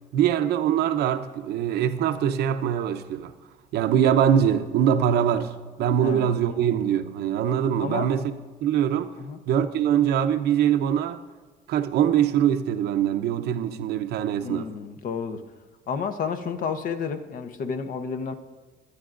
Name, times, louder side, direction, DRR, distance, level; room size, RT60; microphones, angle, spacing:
voice 1, 0.1-3.3 3.7-8.3 8.6-9.1 9.5-11.2 11.7-14.7, right 9 dB, 75° right, 0.7 m, -23 dB
voice 2, 6.0-6.4 7.8-8.1 9.2-9.4 14.4-15.4 15.9-18.3, left 6 dB, 55° left, 0.9 m, -31 dB
21.5 x 9.5 x 2.5 m
cardioid pair, 110°, 17 cm